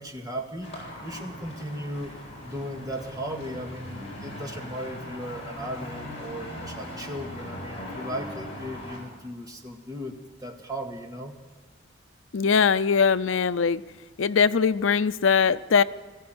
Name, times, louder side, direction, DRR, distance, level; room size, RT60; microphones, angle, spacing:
voice 1, 0.0-2.1 2.4-11.4, equal, 20° right, 2 dB, 1.9 m, -36 dB
sound 1, 0.6-9.0, left 1 dB, 30° left, 7.1 m, -39 dB
voice 2, 12.3-13.8 14.2-15.8, left 6 dB, 85° left, 15 dB, 0.5 m, -21 dB
21.5 x 15.0 x 7.9 m, 1.4 s
head